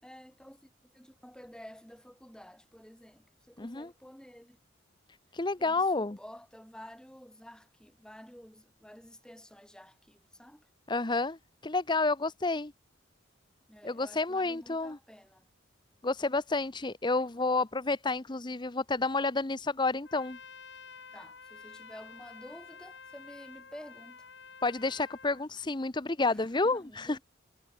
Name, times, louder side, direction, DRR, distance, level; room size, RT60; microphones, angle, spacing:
voice 1, 0.0-4.6 5.6-10.7 13.7-15.5 21.1-24.3 26.3-27.2, equal, 5° left, 7.5 m, -51 dB
voice 2, 3.6-3.9 5.3-6.2 10.9-12.7 13.8-15.0 16.0-20.4 24.6-27.2, left 3 dB, 25° left, 0.8 m, -30 dB
Trumpet, 20.0-25.4, left 5 dB, 60° left, 6.6 m, -50 dB
head